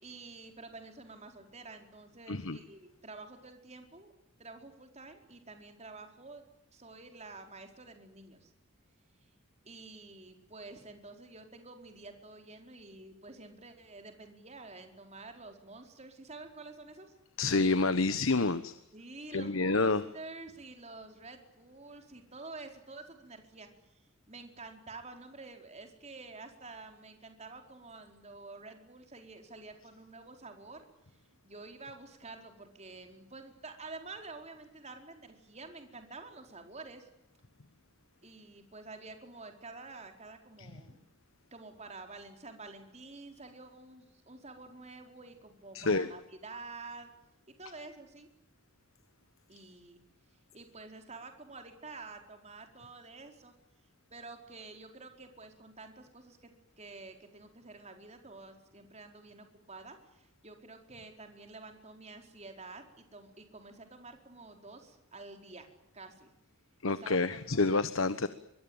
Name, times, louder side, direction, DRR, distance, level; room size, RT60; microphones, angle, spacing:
voice 1, 0.0-4.1 4.4-6.4 6.7-8.5 9.6-17.1 18.9-23.7 24.3-37.1 38.2-41.0 41.5-47.1 47.6-48.3 49.5-50.0 50.5-53.5 54.1-56.5 56.8-65.7 65.9-66.3 66.8-67.6, right 3 dB, 30° right, 4.5 m, -49 dB
voice 2, 17.4-18.7 19.3-20.0 45.7-46.1 66.8-68.3, left 3 dB, 70° left, 1.2 m, -28 dB
24.0 x 24.0 x 8.9 m
head